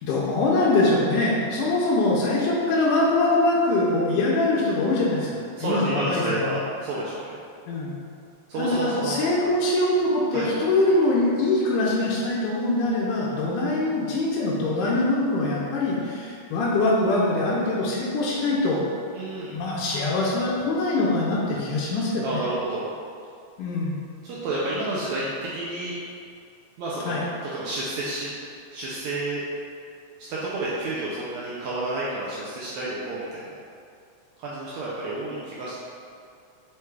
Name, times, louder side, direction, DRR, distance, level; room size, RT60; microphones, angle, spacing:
voice 1, 0.0-5.3 5.6-6.6 7.7-7.9 8.6-18.8 19.5-22.3 23.6-24.0 27.1-27.2, left 2 dB, 80° left, -5 dB, 2.1 m, -23 dB
voice 2, 5.5-7.4 8.5-9.2 10.3-10.5 19.1-19.5 22.2-22.8 24.2-26.0 26.8-27.1 27.4-28.3 28.7-29.4 30.3-33.4 34.4-35.8, right 2 dB, 80° right, -7 dB, 1.6 m, -30 dB
5.7 x 2.3 x 3.2 m, 2.4 s
omnidirectional pair, 3.8 m